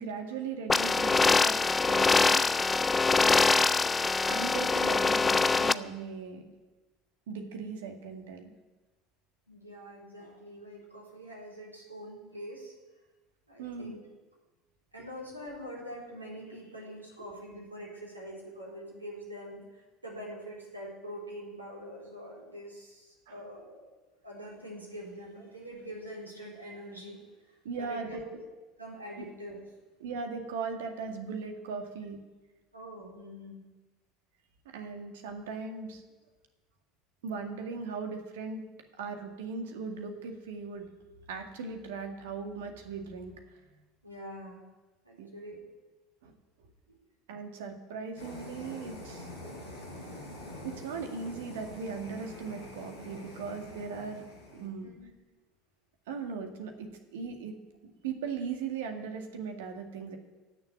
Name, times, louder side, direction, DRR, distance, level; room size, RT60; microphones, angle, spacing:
voice 1, 0.0-1.6 1.9-2.5 3.2-3.6 4.3-6.4 7.3-8.5 13.6-13.9 23.3-23.4 27.6-28.4 29.2-29.3 30.0-32.2 34.7-36.0 37.2-38.6 39.0-40.9 41.3-43.6 45.2-45.3 46.2-46.3 47.3-49.3 50.6-54.2 54.5-54.9 56.1-57.6 57.8-60.2, right 5 dB, 65° right, 5 dB, 2.0 m, -38 dB
sound 1, 0.7-5.7, left 4 dB, 20° left, 0.5 m, -24 dB
voice 2, 9.5-12.7 13.5-14.1 14.9-23.9 24.2-28.2 28.8-29.6 32.7-33.6 44.0-44.6 45.0-45.6 46.9-47.0 49.4-50.7 54.8-55.1, equal, 85° right, -3 dB, 4.0 m, -45 dB
sound 2, 48.2-54.7, left 1 dB, 75° left, 4.6 m, -45 dB
15.5 x 7.1 x 9.9 m, 1.2 s
figure-of-eight pair, 65°, 0 cm